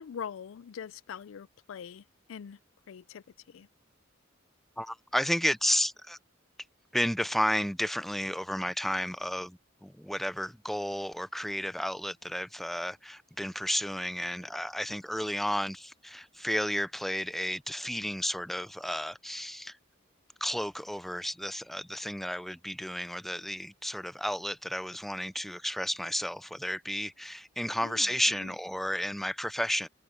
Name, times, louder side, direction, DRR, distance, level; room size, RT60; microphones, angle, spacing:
voice 1, 0.0-2.6 2.9-3.7 27.8-28.1 28.4-28.5, left 7 dB, 80° left, 0.4 m, -43 dB
voice 2, 4.8-6.2 6.9-19.8 20.4-29.9, equal, ahead, 0.4 m, -32 dB
head